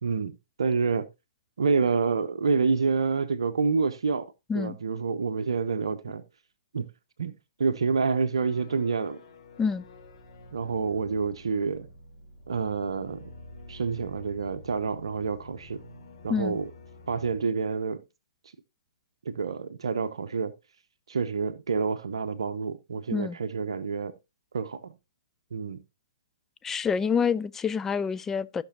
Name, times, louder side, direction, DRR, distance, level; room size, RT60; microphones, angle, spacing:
voice 1, 0.0-1.1 1.6-6.2 6.7-6.9 7.2-7.3 7.6-9.2 10.5-11.9 12.5-13.3 13.7-15.8 16.2-16.7 17.1-18.0 19.2-20.5 21.1-24.1 24.5-24.9 25.5-25.8, right 5 dB, 70° right, 0.7 m, -28 dB
sound 1, 8.3-17.4, left 1 dB, 65° left, 3.6 m, -49 dB
voice 2, 26.6-28.6, left 6 dB, 10° left, 0.4 m, -27 dB
14.5 x 6.0 x 2.7 m
figure-of-eight pair, 125°, 3 cm